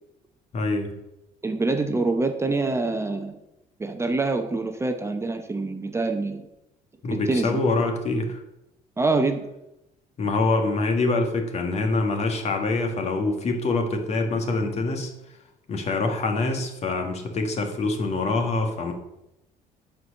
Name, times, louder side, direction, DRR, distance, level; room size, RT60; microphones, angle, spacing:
voice 1, 0.5-0.9 7.0-8.4 10.2-15.1 15.7-18.9, left 3 dB, 45° left, 4 dB, 1.8 m, -25 dB
voice 2, 1.4-3.3 3.8-6.5 7.1-7.6 9.0-9.5, right 3 dB, 15° right, 6 dB, 0.7 m, -25 dB
11.0 x 4.6 x 6.5 m, 0.89 s
cardioid pair, 115°, 15 cm